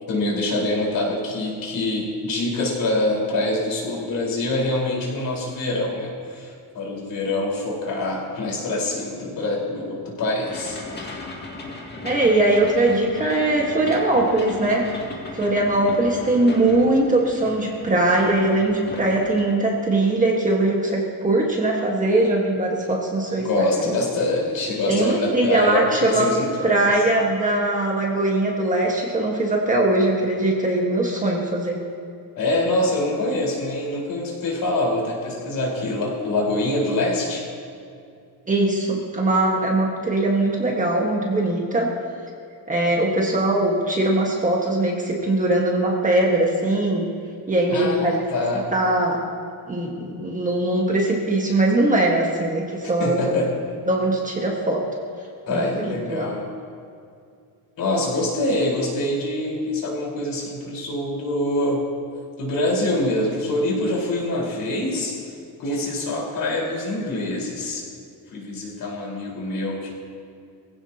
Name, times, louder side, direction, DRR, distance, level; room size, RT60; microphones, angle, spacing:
voice 1, 0.1-10.8 23.4-26.9 32.3-37.5 47.7-48.7 53.0-53.5 55.5-56.5 57.8-61.8 62.4-65.2 65.6-67.8 68.3-69.9, left 1 dB, 50° left, -3 dB, 4.6 m, -25 dB
sound 1, 10.5-19.5, left 2 dB, 25° left, 2.0 m, -36 dB
voice 2, 12.0-14.9 15.3-24.0 24.9-26.3 26.6-31.8 38.5-41.9 42.7-47.1 47.5-48.2 48.7-49.2 49.7-53.4 53.9-54.9 55.5-56.3, right 2 dB, 20° right, -2 dB, 1.6 m, -21 dB
23.5 x 16.0 x 2.9 m, 2.4 s
cardioid pair, 175°, 42 cm